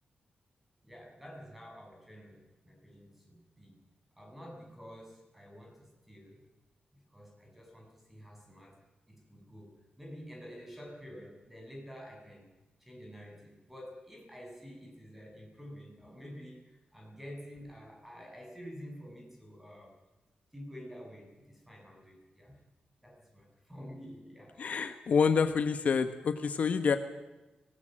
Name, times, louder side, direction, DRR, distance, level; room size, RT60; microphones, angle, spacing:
voice 1, 0.8-3.8 4.2-6.4 6.9-8.8 9.1-12.5 12.8-20.0 20.5-22.5 23.0-24.9, equal, 5° right, 0 dB, 7.1 m, -49 dB
voice 2, 24.6-27.0, left 6 dB, 55° left, 8 dB, 1.3 m, -27 dB
24.5 x 19.5 x 7.6 m, 1.1 s
wide cardioid pair, 150°, 3 cm